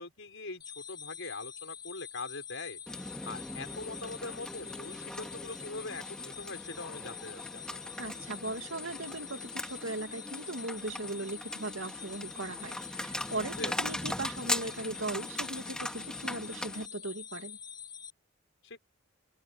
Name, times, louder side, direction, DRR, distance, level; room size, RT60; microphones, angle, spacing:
voice 1, 0.0-2.8 3.2-7.8 13.6-13.8 18.6-18.8, left 3 dB, 60° left, 5.9 m, -42 dB
sound 1, 0.6-18.1, left 9 dB, 20° left, 5.7 m, -46 dB
sound 2, 2.9-16.9, left 1 dB, 5° left, 2.5 m, -40 dB
voice 2, 8.0-17.6, right 2 dB, 65° right, 2.8 m, -38 dB
open air
head